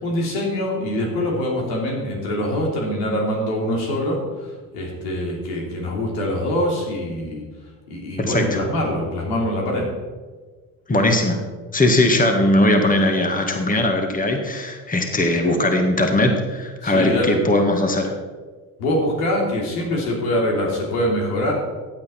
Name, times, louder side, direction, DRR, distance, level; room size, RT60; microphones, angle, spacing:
voice 1, 0.0-7.4 7.9-9.9 16.8-17.4 18.8-21.5, left 1 dB, 75° left, -1 dB, 3.3 m, -24 dB
voice 2, 8.2-8.6 10.9-11.4 11.7-18.1, left 1 dB, 15° left, 4 dB, 1.9 m, -19 dB
15.0 x 8.7 x 4.5 m, 1.4 s
hypercardioid pair, 65°, 46 cm